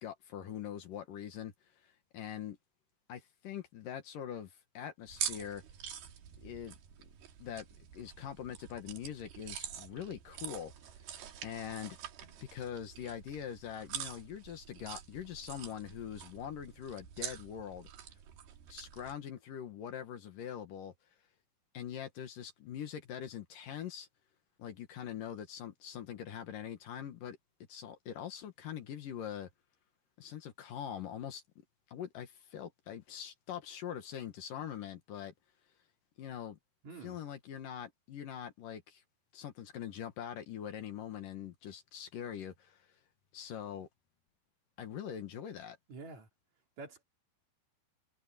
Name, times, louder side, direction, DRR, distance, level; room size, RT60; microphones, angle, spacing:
voice 1, 0.0-1.5 1.8-2.6 3.1-5.6 6.4-7.1 7.4-7.7 7.9-10.7 11.4-12.0 12.4-17.9 18.7-20.9 21.7-24.1 24.6-27.4 27.7-29.5 30.2-31.4 31.9-35.3 36.2-36.6 37.0-39.0 39.3-42.9 43.3-43.9 44.8-45.8, left 9 dB, 65° left, 3.0 m, -43 dB
sound 1, 5.1-19.2, right 9 dB, 80° right, 4.0 m, -46 dB
voice 2, 36.8-37.2 45.9-46.3 46.8-47.0, right 4 dB, 50° right, 3.8 m, -47 dB
omnidirectional pair, 4.4 m